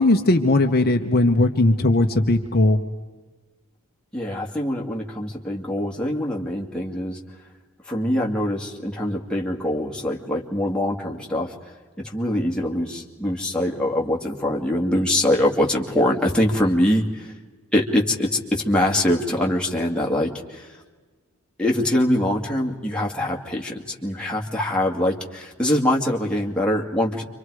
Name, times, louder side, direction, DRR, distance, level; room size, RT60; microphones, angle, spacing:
voice 1, 0.0-2.8, left 2 dB, 45° left, 4 dB, 1.1 m, -18 dB
voice 2, 4.1-7.2 7.9-11.5 12.0-17.3 17.7-20.7 21.6-27.2, left 1 dB, 5° left, -2 dB, 2.3 m, -23 dB
29.5 x 25.5 x 4.9 m, 1.4 s
head